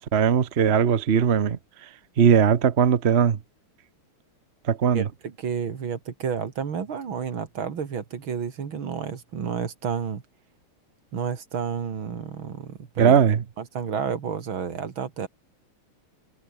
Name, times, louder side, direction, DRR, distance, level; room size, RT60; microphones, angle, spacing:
voice 1, 0.1-1.9 2.2-3.4 4.6-5.1 13.0-13.4, right 7 dB, 45° right, 0.9 m, -19 dB
voice 2, 4.9-10.2 11.1-13.2 13.6-15.3, right 6 dB, 70° right, 3.0 m, -31 dB
omnidirectional pair, 2.3 m